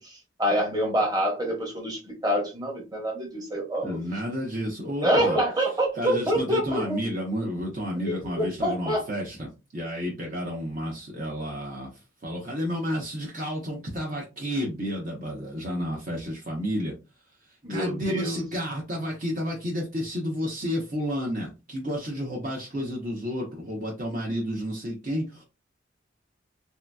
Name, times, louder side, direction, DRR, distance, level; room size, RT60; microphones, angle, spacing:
voice 1, 0.0-4.0 5.0-7.0 8.0-9.0 17.6-18.4, equal, 20° right, 0 dB, 1.0 m, -26 dB
voice 2, 3.8-5.4 6.0-16.9 17.7-25.4, equal, 45° right, -1 dB, 0.7 m, -31 dB
3.3 x 2.7 x 2.2 m, 0.27 s
head